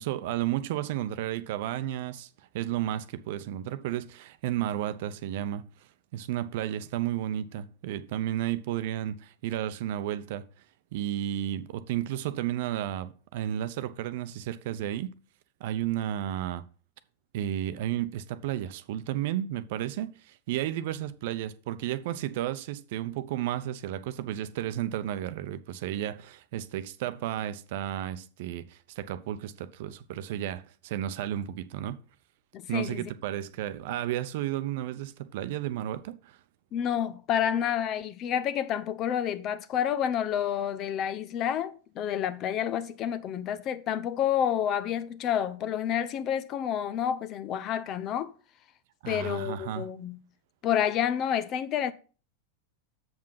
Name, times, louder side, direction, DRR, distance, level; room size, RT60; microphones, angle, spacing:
voice 1, 0.0-2.3 2.5-5.6 6.1-10.5 10.9-15.1 15.6-16.6 17.3-32.0 32.7-36.4 49.0-49.9, right 12 dB, 60° right, 0.7 m, -32 dB
voice 2, 32.5-33.1 36.7-48.3 49.1-50.2 50.6-51.9, left 9 dB, 40° left, 0.8 m, -29 dB
7.1 x 5.3 x 5.8 m
hypercardioid pair, 95°, 0 cm